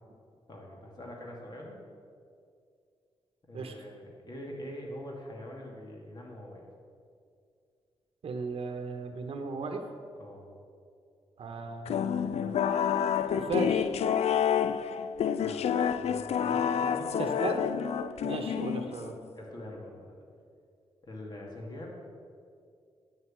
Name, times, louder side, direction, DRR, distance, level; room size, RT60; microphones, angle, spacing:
voice 1, 0.5-1.8 3.5-6.6 10.2-10.5 15.4-15.6 16.0-17.5 18.5-18.6 19.4-20.2 21.0-22.0, left 1 dB, 40° left, -1 dB, 2.1 m, -43 dB
voice 2, 8.2-9.8 11.4-12.7 13.3-13.9 17.2-17.6 18.2-19.2, right 4 dB, 65° right, 4 dB, 1.0 m, -36 dB
sound 1, 11.9-19.2, left 8 dB, 85° left, 0.4 m, -29 dB
9.2 x 7.8 x 7.5 m, 2.3 s
wide cardioid pair, 125°, 11 cm